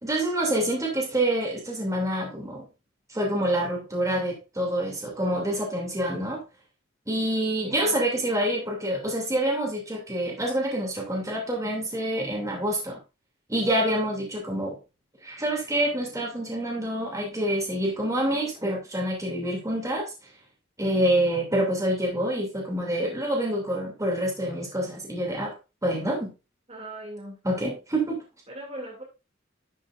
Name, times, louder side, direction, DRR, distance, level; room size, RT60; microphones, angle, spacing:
voice 1, 0.0-2.7 3.1-6.4 7.1-13.0 13.5-14.8 15.2-20.1 20.8-25.5 25.8-26.3 27.4-28.2, right 1 dB, 15° right, 2.7 m, -27 dB
voice 2, 7.6-8.0 26.7-27.4 28.5-29.0, right 1 dB, 35° right, 2.5 m, -39 dB
11.0 x 6.5 x 2.5 m
head